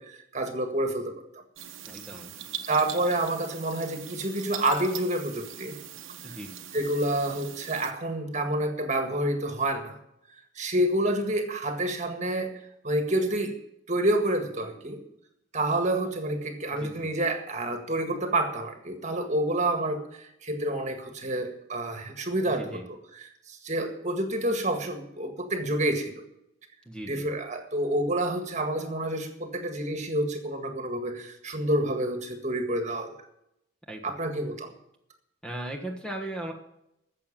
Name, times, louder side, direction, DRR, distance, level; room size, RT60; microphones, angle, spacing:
voice 1, 0.0-1.4 2.7-5.8 6.2-6.4 6.7-10.0 10.6-12.5 12.8-13.6 13.9-15.0 15.5-26.2 27.1-33.2 34.0-34.7, right 1 dB, 35° right, 5 dB, 1.8 m, -28 dB
sound 1, 1.6-7.9, right 10 dB, 75° right, 1.1 m, -42 dB
voice 2, 1.8-2.3 6.2-6.5 16.7-17.1 22.5-22.8 26.8-27.2 33.9-34.1 35.4-36.5, right 1 dB, 5° left, 2 dB, 1.4 m, -38 dB
14.0 x 7.7 x 7.4 m, 0.80 s
head